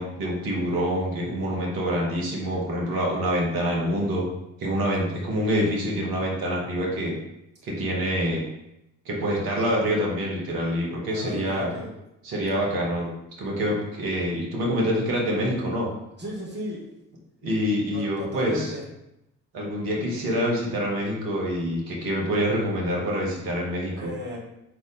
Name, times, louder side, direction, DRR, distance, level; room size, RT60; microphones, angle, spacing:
voice 1, 0.0-4.3 4.6-7.1 7.6-8.4 9.1-11.7 12.2-13.1 13.4-15.9 17.4-18.7 19.5-24.1, equal, 60° right, -3 dB, 2.1 m, -26 dB
voice 2, 11.1-11.9 16.2-16.8 17.9-18.8 24.0-24.4, equal, 25° right, -4 dB, 2.3 m, -35 dB
6.5 x 4.0 x 3.5 m, 0.87 s
figure-of-eight pair, 50°, 40 cm